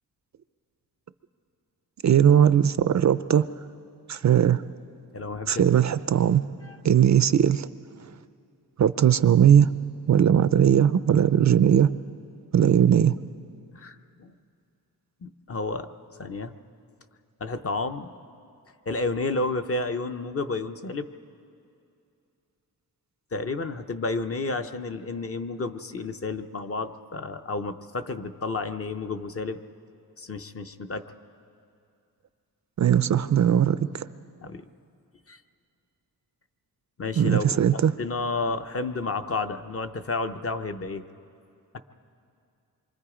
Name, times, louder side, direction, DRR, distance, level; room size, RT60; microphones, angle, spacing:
voice 1, 2.0-3.5 4.1-4.6 5.5-6.4 6.8-7.7 8.8-9.7 10.1-11.9 12.5-13.1 32.8-34.0 37.2-37.9, right 9 dB, 50° right, 14 dB, 0.4 m, -19 dB
voice 2, 5.1-5.8 6.6-6.8 13.8-14.3 15.2-15.9 16.2-16.5 17.4-18.1 18.9-21.1 23.3-29.6 30.2-31.0 34.4-34.7 35.3-35.4 37.0-37.6 38.0-41.0, left 3 dB, 35° left, 7 dB, 0.7 m, -31 dB
27.0 x 24.5 x 5.0 m, 2.6 s
wide cardioid pair, 170°, 38 cm